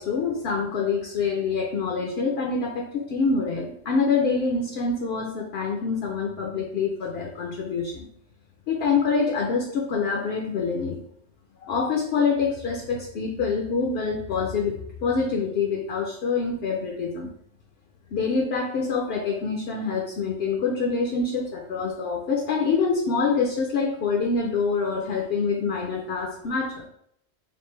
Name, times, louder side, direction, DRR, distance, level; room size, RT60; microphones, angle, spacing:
voice 1, 0.0-8.1 8.7-11.0 11.7-14.7 15.0-17.3 18.1-26.9, left 4 dB, 60° left, 1 dB, 0.8 m, -26 dB
5.2 x 2.5 x 3.2 m, 0.72 s
omnidirectional pair, 1.3 m